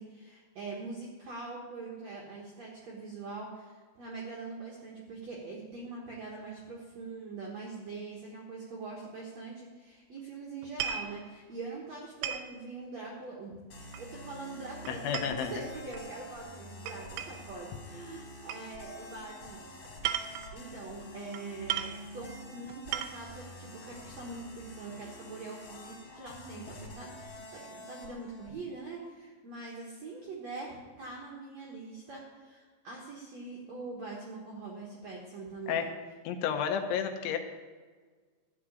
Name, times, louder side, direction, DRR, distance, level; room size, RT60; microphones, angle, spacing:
voice 1, 0.0-13.6 14.0-19.7 20.5-35.9, right 3 dB, 70° right, -4 dB, 1.6 m, -43 dB
sound 1, 10.6-11.1 12.2-12.5 13.9-14.3 14.9-16.1 16.9-17.5 18.5-18.7 19.8-20.6 21.3-21.4 21.7-22.0 22.7-23.3, right 10 dB, 85° right, 3.0 m, -36 dB
sound 2, 13.7-28.5, left 1 dB, 40° left, 3.5 m, -47 dB
voice 2, 14.9-15.5 35.7-35.9 36.3-37.4, left 8 dB, 90° left, 6 dB, 3.4 m, -31 dB
13.0 x 4.9 x 8.9 m, 1.5 s
omnidirectional pair, 5.2 m